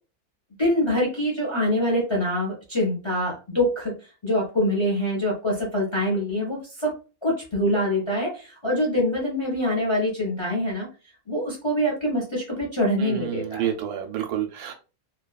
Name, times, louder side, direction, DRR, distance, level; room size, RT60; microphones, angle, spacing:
voice 1, 0.6-3.9 4.2-6.9 7.2-10.9 11.3-13.7, equal, 30° left, 0.5 m, -24 dB
voice 2, 13.0-14.7, right 10 dB, 90° right, 1.1 m, -29 dB
2.7 x 2.3 x 2.3 m
omnidirectional pair, 1.6 m